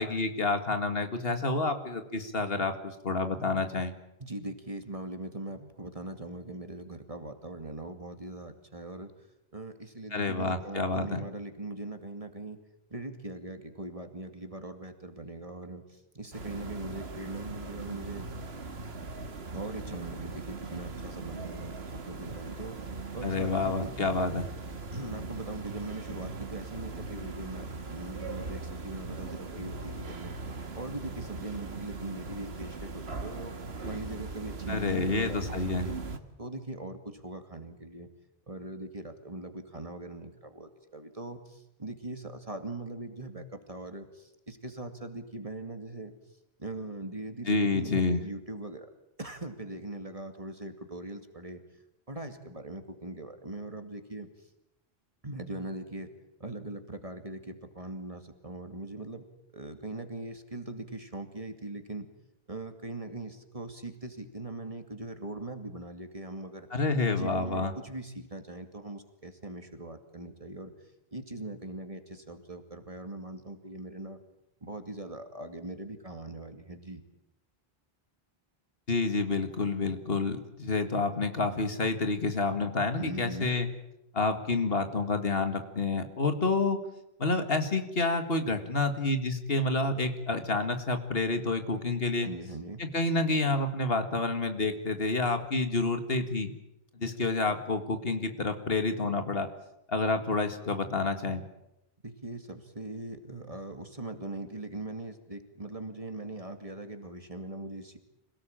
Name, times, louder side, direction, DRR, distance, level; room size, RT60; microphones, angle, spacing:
voice 1, 0.0-3.9 10.1-11.2 23.2-24.4 34.7-35.9 47.5-48.2 66.7-67.7 78.9-83.7 84.1-86.8 87.2-92.3 92.8-96.5 97.0-99.5 99.9-101.4, left 3 dB, 70° left, 7 dB, 2.2 m, -29 dB
voice 2, 4.2-9.1 9.5-12.6 12.9-18.3 19.5-22.8 23.1-24.2 24.9-30.4 30.7-33.6 33.8-36.0 36.4-38.1 38.5-46.1 46.6-48.9 49.2-51.6 52.1-54.3 55.2-56.1 56.4-59.3 59.5-62.1 62.5-66.7 67.1-70.7 71.1-74.2 74.6-77.0 83.0-83.6 92.2-92.8 102.0-108.0, right 2 dB, 35° right, 6 dB, 2.5 m, -41 dB
sound 1, 16.3-36.2, right 3 dB, 85° right, 1.9 m, -40 dB
26.5 x 17.5 x 8.9 m, 0.88 s
omnidirectional pair, 1.0 m